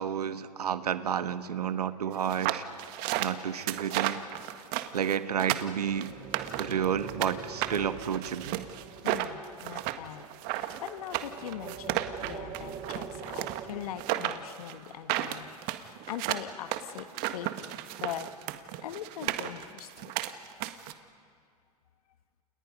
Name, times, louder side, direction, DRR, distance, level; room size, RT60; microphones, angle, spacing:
voice 1, 0.0-2.6 3.2-4.2 4.9-6.1 6.6-8.6, right 8 dB, 90° right, 12 dB, 1.2 m, -31 dB
sound 1, 2.3-7.3 7.6-20.9, right 15 dB, 50° right, 1.6 m, -33 dB
sound 2, 5.5-14.1, right 6 dB, 35° right, 3.1 m, -45 dB
voice 2, 9.0-15.5 15.8-18.3 18.8-20.2, left 11 dB, 75° left, 11 dB, 1.4 m, -41 dB
29.5 x 29.0 x 5.3 m, 2.3 s
hypercardioid pair, 105°, 19 cm